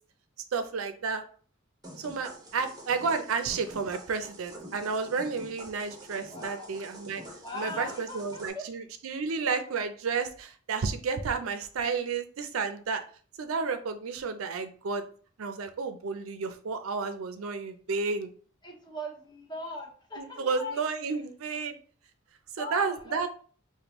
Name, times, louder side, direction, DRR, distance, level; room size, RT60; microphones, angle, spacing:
voice 1, 0.5-1.2 2.0-7.2 7.5-13.0 13.4-15.0 15.4-18.3 20.2-21.8 22.5-23.3, right 5 dB, 85° right, 9 dB, 0.5 m, -31 dB
sound 1, 1.8-8.5, right 1 dB, 20° right, 0.8 m, -46 dB
voice 2, 6.1-6.7 7.4-8.6 18.6-20.8 22.6-23.3, left 1 dB, 20° left, 1 dB, 0.7 m, -40 dB
5.1 x 2.1 x 3.0 m, 0.43 s
head